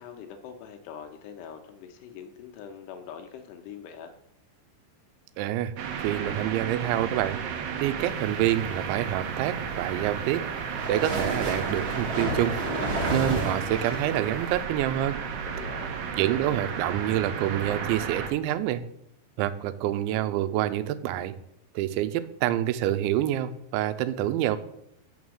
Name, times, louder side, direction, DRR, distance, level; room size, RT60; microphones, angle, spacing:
voice 1, 0.0-4.1 15.4-16.0, left 7 dB, 80° left, 7 dB, 2.6 m, -43 dB
voice 2, 5.4-5.7 6.0-7.4 7.8-10.4 10.9-12.6 13.1-15.2 16.2-18.8 19.4-21.3 21.8-24.6, right 12 dB, 85° right, 12 dB, 3.0 m, -27 dB
sound 1, 5.8-18.3, right 6 dB, 70° right, 2.2 m, -33 dB
sound 2, 9.5-14.6, right 1 dB, 50° right, 1.5 m, -32 dB
7.1 x 6.8 x 6.3 m, 0.81 s
omnidirectional pair, 5.2 m